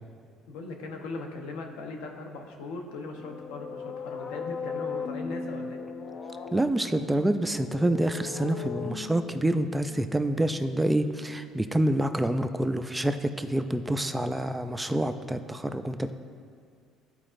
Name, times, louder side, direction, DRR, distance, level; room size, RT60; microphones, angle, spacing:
voice 1, 0.5-5.8, left 3 dB, 90° left, 3 dB, 0.8 m, -38 dB
sound 1, 3.1-10.9, left 6 dB, 55° left, 0.6 m, -39 dB
voice 2, 6.5-16.1, right 1 dB, 10° right, 9 dB, 0.3 m, -27 dB
13.0 x 4.7 x 2.6 m, 2.2 s
cardioid pair, 100°, 0 cm